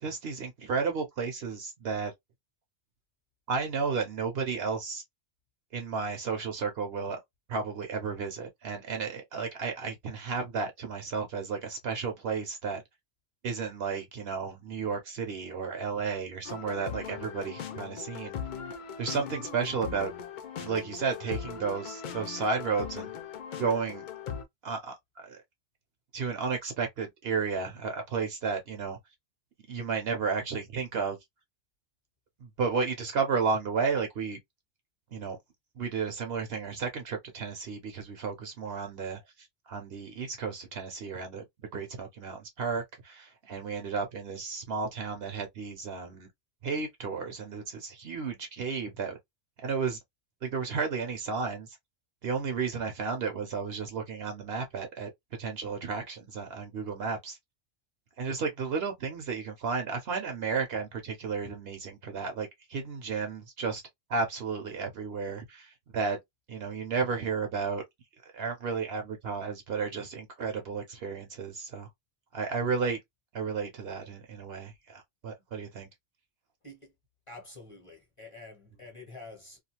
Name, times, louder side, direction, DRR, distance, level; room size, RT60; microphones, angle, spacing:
voice 1, 0.0-2.1 3.5-5.0 5.7-7.2 7.5-12.8 13.4-18.4 19.0-20.1 20.6-23.1 23.6-24.0 24.6-25.4 26.1-29.0 29.7-31.2 32.4-34.4 35.1-35.4 35.8-41.4 41.7-46.3 46.6-49.2 49.6-50.0 50.4-51.8 52.2-55.1 55.4-57.4 58.2-63.8 64.1-66.2 66.5-67.8 68.2-71.9 72.3-73.0 73.3-75.9, right 5 dB, 60° right, 0.8 m, -33 dB
sound 1, 16.4-24.4, left 7 dB, 60° left, 0.5 m, -39 dB
voice 2, 77.3-79.6, left 2 dB, 30° left, 0.9 m, -48 dB
2.4 x 2.3 x 2.8 m
omnidirectional pair, 1.2 m